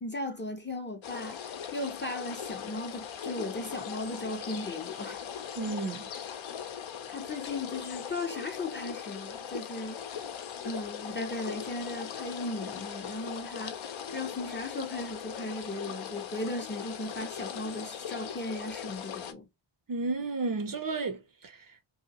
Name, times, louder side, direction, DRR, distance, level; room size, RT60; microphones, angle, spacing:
voice 1, 0.0-5.2 7.1-10.2 10.6-19.5, left 2 dB, 25° left, 0.5 m, -37 dB
sound 1, 1.0-19.3, left 8 dB, 75° left, 0.6 m, -40 dB
voice 2, 5.6-6.0 19.9-21.8, right 3 dB, 45° right, 0.5 m, -33 dB
2.8 x 2.5 x 2.8 m
wide cardioid pair, 130°, 48 cm